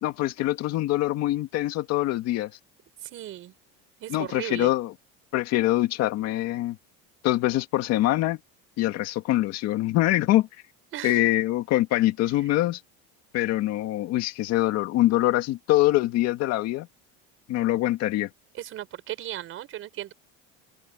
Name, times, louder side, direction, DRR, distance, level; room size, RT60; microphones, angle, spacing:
voice 1, 0.0-2.5 4.1-4.9 5.3-6.8 7.2-8.4 8.8-10.5 11.0-12.8 13.3-16.9 17.5-18.3, left 15 dB, 50° left, 2.0 m, -24 dB
voice 2, 3.0-3.5 4.0-4.7 10.9-11.2 18.5-20.1, right 13 dB, 40° right, 4.8 m, -36 dB
open air
cardioid pair, 165°, 33 cm